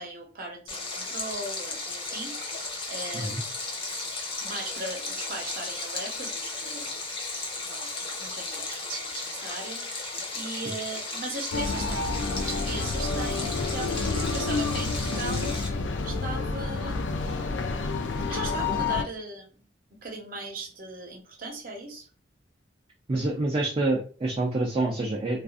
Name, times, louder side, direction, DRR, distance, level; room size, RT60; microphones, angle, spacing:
voice 1, 0.0-3.3 4.4-6.9 7.6-12.1 12.4-17.2 18.3-19.6 20.0-22.1, right 2 dB, 50° right, 2 dB, 0.8 m, -38 dB
Stream, 0.7-15.7, left 3 dB, 30° left, 0.6 m, -35 dB
sound 1, 11.5-19.0, left 4 dB, 80° left, 0.4 m, -29 dB
voice 2, 23.1-25.4, right 2 dB, 30° right, -2 dB, 0.4 m, -27 dB
2.4 x 2.4 x 2.4 m, 0.38 s
head